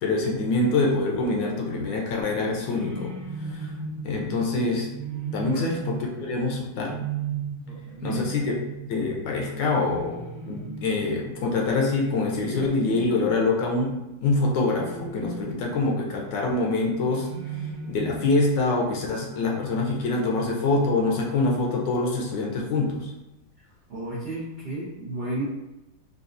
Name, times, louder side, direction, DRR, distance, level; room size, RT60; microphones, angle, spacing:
voice 1, 0.0-3.1 3.5-3.7 4.0-4.9 5.3-6.9 8.0-8.4 8.9-13.9 14.2-23.1, left 3 dB, 75° left, 0 dB, 1.2 m, -25 dB
sound 1, 2.4-14.0 14.7-16.0 17.0-18.6, right 5 dB, 45° right, 1.1 m, -37 dB
voice 2, 7.7-8.3 23.9-25.4, right 1 dB, 75° right, -8 dB, 0.5 m, -33 dB
4.0 x 2.4 x 2.5 m, 0.98 s
omnidirectional pair, 2.1 m